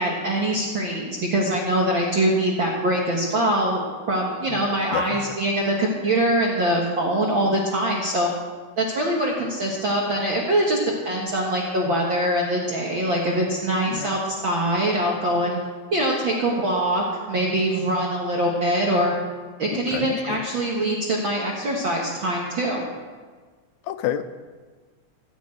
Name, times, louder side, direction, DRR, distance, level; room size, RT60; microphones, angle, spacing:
voice 1, 0.0-8.3 8.8-10.8 11.1-15.6 15.9-19.1 19.6-22.8, right 1 dB, 50° right, -2 dB, 1.9 m, -23 dB
voice 2, 4.9-5.3 13.9-14.2 19.7-20.4 23.9-24.2, left 11 dB, 80° left, 11 dB, 2.0 m, -29 dB
15.0 x 6.4 x 8.9 m, 1.5 s
omnidirectional pair, 3.4 m